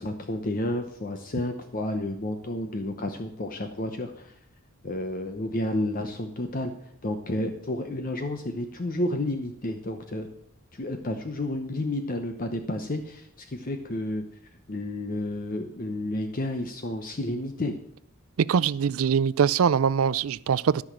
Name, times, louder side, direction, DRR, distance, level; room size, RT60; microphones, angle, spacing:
voice 1, 0.0-4.3 4.8-6.7 7.0-10.3 10.7-14.2 14.7-17.8, left 1 dB, 40° left, 0.8 m, -31 dB
voice 2, 18.4-20.8, right 7 dB, 75° right, 0.4 m, -23 dB
13.0 x 6.0 x 7.5 m
head